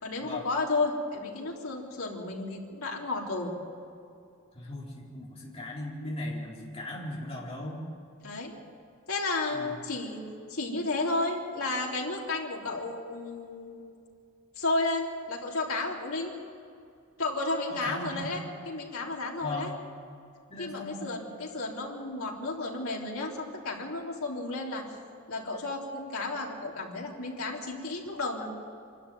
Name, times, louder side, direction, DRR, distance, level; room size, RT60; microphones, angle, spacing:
voice 1, 0.0-3.5 8.2-8.5 9.1-10.2 10.5-14.0 14.6-16.3 17.2-19.7 20.6-24.8 25.3-28.5, left 2 dB, 80° left, -2 dB, 3.7 m, -32 dB
voice 2, 4.5-7.9 9.5-9.7 17.7-18.3 19.4-19.7 20.5-21.1, left 1 dB, 30° left, -5 dB, 4.3 m, -38 dB
26.0 x 13.0 x 9.4 m, 2.5 s
head